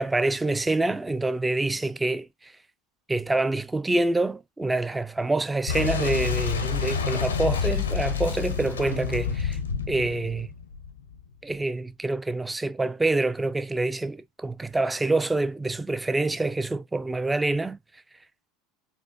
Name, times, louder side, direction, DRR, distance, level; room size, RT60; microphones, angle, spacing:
voice 1, 0.0-2.5 3.1-9.6 9.9-10.5 11.4-17.8, right 2 dB, 10° right, 0.4 m, -26 dB
Boom, 5.7-11.2, left 7 dB, 85° left, 0.6 m, -28 dB
4.3 x 2.5 x 2.4 m
hypercardioid pair, 80°, 0 cm